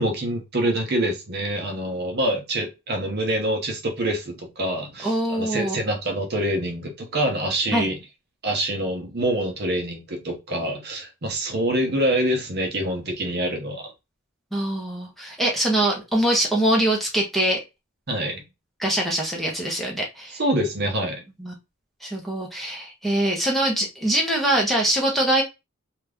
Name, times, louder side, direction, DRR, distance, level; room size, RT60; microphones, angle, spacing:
voice 1, 0.0-8.0 8.4-13.9 18.1-18.4 20.3-21.2, right 1 dB, 50° right, 0.8 m, -26 dB
voice 2, 5.0-5.8 7.7-7.9 14.5-17.6 18.8-20.4 21.4-21.5 22.0-25.4, right 1 dB, ahead, 0.8 m, -23 dB
2.9 x 2.4 x 3.4 m
head